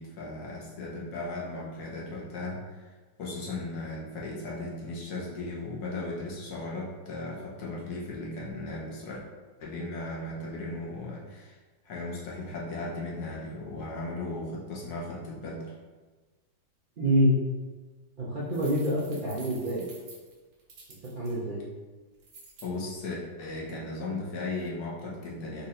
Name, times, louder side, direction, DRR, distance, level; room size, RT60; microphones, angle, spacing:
voice 1, 0.0-2.9 3.2-9.2 9.6-11.6 11.8-15.7 22.6-25.7, left 2 dB, 60° left, -4 dB, 1.3 m, -36 dB
voice 2, 17.0-17.4 18.2-19.9 21.1-21.6, equal, 85° right, -7 dB, 0.4 m, -26 dB
sound 1, 18.5-21.3 22.2-22.7, right 3 dB, 60° right, 1.3 m, -50 dB
4.1 x 2.5 x 4.2 m, 1.3 s
omnidirectional pair, 2.0 m